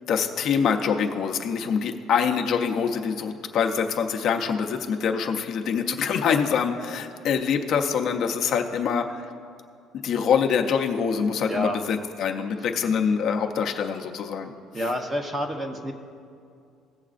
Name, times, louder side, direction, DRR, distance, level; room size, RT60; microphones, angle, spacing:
voice 1, 0.1-9.2 9.9-14.5, left 6 dB, 50° left, 3 dB, 0.6 m, -25 dB
voice 2, 11.4-11.8 14.7-15.9, equal, 15° right, 4 dB, 0.7 m, -28 dB
17.5 x 7.1 x 2.5 m, 2.4 s
cardioid pair, 165°, 0 cm